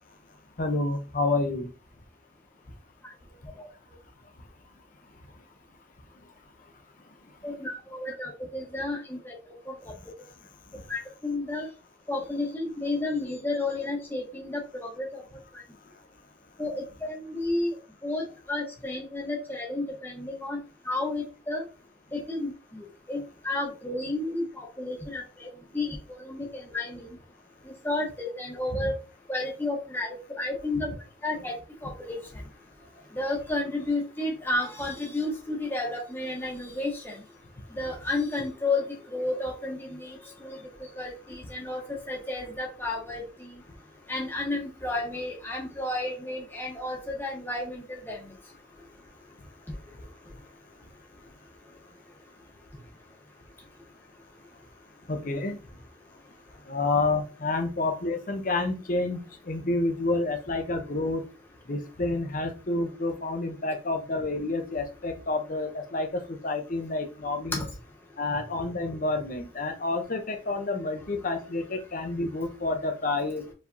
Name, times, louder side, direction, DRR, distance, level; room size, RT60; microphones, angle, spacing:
voice 1, 0.6-1.7 10.7-10.8 55.1-55.6 56.7-61.2 61.7-67.6 68.2-73.4, left 2 dB, 40° left, 6 dB, 0.7 m, -29 dB
voice 2, 7.4-9.3 10.9-11.7 12.1-15.2 16.6-17.7 18.0-20.6 20.9-21.6 22.1-25.5 25.7-27.1 27.8-28.9 29.3-30.9 31.2-31.5 31.8-32.2 33.2-37.2 37.8-38.8 39.1-40.6 41.0-41.8 42.1-43.5 44.1-48.2 67.5-67.6, left 2 dB, 10° left, -2 dB, 1.0 m, -32 dB
4.8 x 3.3 x 2.6 m, 0.33 s
head